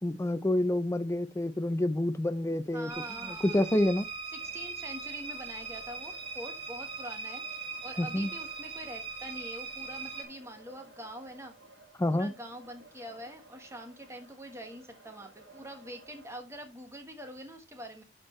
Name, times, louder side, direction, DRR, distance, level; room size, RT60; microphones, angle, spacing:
voice 1, 0.0-2.9 3.2-4.1 8.0-8.3 12.0-12.3, left 1 dB, 15° left, 0.4 m, -28 dB
voice 2, 2.7-3.7 4.3-11.5 12.1-18.0, right 1 dB, 15° right, 1.2 m, -45 dB
sound 1, 2.9-10.2, right 5 dB, 30° right, 1.7 m, -40 dB
sound 2, 4.4-16.4, right 2 dB, 85° right, 2.0 m, -57 dB
11.0 x 4.5 x 3.1 m
head